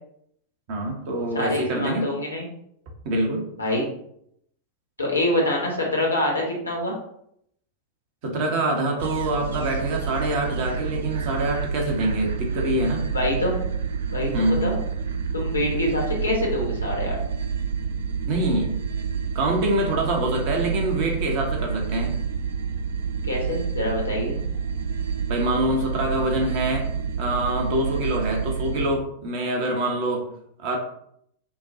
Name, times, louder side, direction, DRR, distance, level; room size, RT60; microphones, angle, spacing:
voice 1, 0.7-2.1 3.0-3.5 8.2-13.0 14.3-14.7 18.3-18.8 19.3-22.1 25.3-26.9 27.2-30.3 30.6-30.8, right 1 dB, 45° right, 1 dB, 1.0 m, -25 dB
voice 2, 1.3-2.4 3.6-3.8 5.0-6.9 13.1-13.6 14.1-14.3 14.6-14.8 15.3-17.2 23.3-24.4, left 1 dB, 80° left, -1 dB, 1.2 m, -25 dB
sound 1, 9.0-28.9, right 6 dB, 65° right, 0.4 m, -28 dB
5.8 x 2.2 x 2.7 m, 0.71 s
figure-of-eight pair, 90°, 0 cm